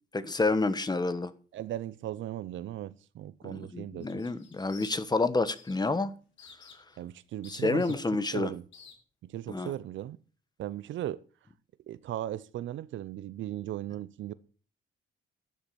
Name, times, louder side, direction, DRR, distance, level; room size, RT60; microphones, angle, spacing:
voice 1, 0.1-1.3 3.4-6.1 7.5-8.5 9.5-9.7, left 3 dB, 20° left, 1.2 m, -29 dB
voice 2, 1.5-4.1 7.0-8.0 8.3-8.6 9.2-10.2 10.6-11.2 11.9-14.3, right 13 dB, 75° right, 0.7 m, -37 dB
sound 1, 4.0-5.3 5.6-5.9 6.4-7.0 7.4-8.3 8.7-8.9, left 6 dB, 70° left, 3.4 m, -52 dB
12.0 x 7.6 x 7.0 m
cardioid pair, 90°, 20 cm